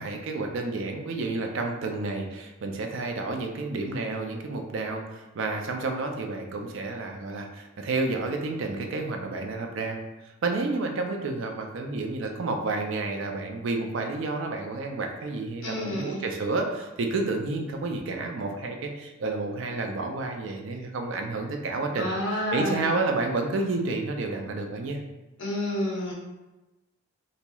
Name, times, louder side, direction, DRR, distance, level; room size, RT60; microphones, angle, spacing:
voice 1, 0.0-10.0 10.2-22.1 22.5-25.0, right 3 dB, 60° right, 3 dB, 0.4 m, -30 dB
voice 2, 15.6-16.2 21.9-22.9 25.4-26.1, left 1 dB, 60° left, -3 dB, 0.7 m, -29 dB
3.0 x 2.7 x 2.2 m, 1.1 s
head